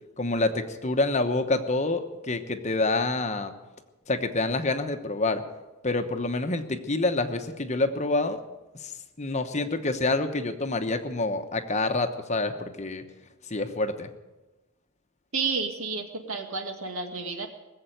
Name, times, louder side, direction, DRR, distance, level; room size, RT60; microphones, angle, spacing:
voice 1, 0.2-3.5 4.1-5.4 5.8-8.4 8.7-13.0 13.5-14.1, left 2 dB, 30° left, 7 dB, 1.0 m, -27 dB
voice 2, 15.3-17.5, right 4 dB, 70° right, 4 dB, 2.1 m, -31 dB
20.0 x 7.7 x 9.1 m, 1.1 s
head